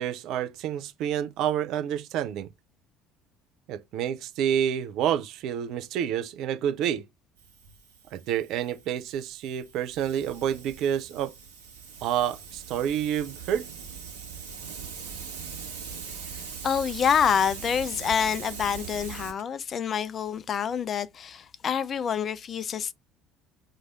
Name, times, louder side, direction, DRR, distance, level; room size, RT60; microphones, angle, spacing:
voice 1, 0.0-2.5 3.7-7.0 8.1-11.3 12.0-13.6, right 9 dB, 55° right, 0.5 m, -28 dB
Hiss, 7.4-19.3, right 6 dB, 70° right, 1.0 m, -41 dB
voice 2, 16.6-22.9, left 7 dB, 40° left, 0.3 m, -27 dB
4.7 x 2.5 x 3.4 m
figure-of-eight pair, 60°, 0 cm